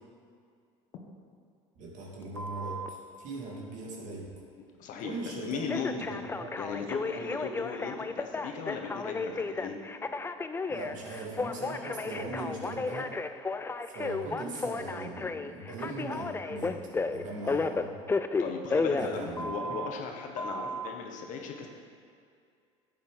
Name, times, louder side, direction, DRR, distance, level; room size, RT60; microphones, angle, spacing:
voice 1, 1.8-4.3 5.0-5.6 5.9-6.5 10.7-13.2 13.9-18.0 19.0-19.8, right 2 dB, 55° right, -2 dB, 2.5 m, -40 dB
Telephone, 2.4-2.9 5.7-19.9 20.4-20.9, left 3 dB, 15° left, 0.4 m, -33 dB
voice 2, 4.8-6.2 6.6-9.8 18.4-21.7, left 5 dB, 60° left, 2 dB, 1.4 m, -37 dB
10.5 x 8.3 x 3.9 m, 2.3 s
hypercardioid pair, 80°, 15 cm